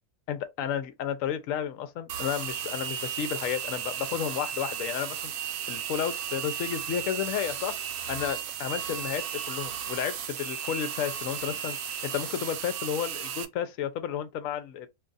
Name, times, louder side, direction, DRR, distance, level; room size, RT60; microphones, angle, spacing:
voice 1, 0.3-5.3 5.7-7.8 8.1-11.8 12.0-14.9, left 9 dB, 70° left, 0.9 m, -32 dB
sound 1, 2.1-13.5, right 9 dB, 70° right, 0.9 m, -35 dB
2.6 x 2.3 x 3.8 m
omnidirectional pair, 1.6 m